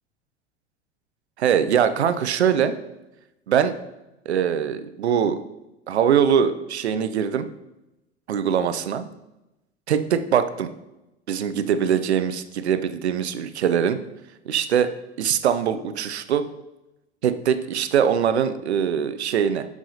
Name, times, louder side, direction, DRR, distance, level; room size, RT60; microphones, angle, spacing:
voice 1, 1.4-2.7 3.5-3.8 4.3-5.4 5.9-7.5 8.3-9.1 9.9-10.7 11.3-14.0 14.5-14.9 15.2-16.5 17.2-19.7, right 8 dB, 70° right, 11 dB, 0.7 m, -22 dB
12.5 x 4.8 x 2.7 m, 0.95 s
figure-of-eight pair, 80°, 34 cm